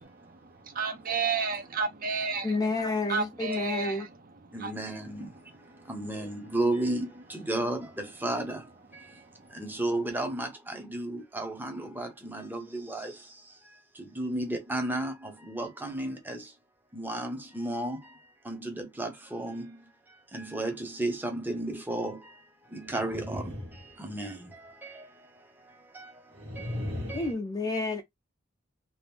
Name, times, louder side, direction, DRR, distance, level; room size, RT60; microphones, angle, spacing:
voice 1, 0.8-2.6 3.1-4.1 4.4-4.7 5.8-5.9 9.2-9.5, right 5 dB, 45° right, 0.7 m, -32 dB
voice 2, 2.4-4.1 27.1-28.0, left 2 dB, 20° left, 0.4 m, -30 dB
voice 3, 4.5-5.3 5.9-8.6 9.6-13.1 14.2-15.1 15.4-16.4 16.9-18.0 18.5-19.6 20.3-22.2 22.7-23.5 24.0-24.4 27.1-27.2, right 1 dB, 10° right, 0.8 m, -32 dB
sound 1, 22.7-24.5 26.3-27.3, left 1 dB, 75° right, 1.6 m, -37 dB
2.9 x 2.5 x 3.4 m
head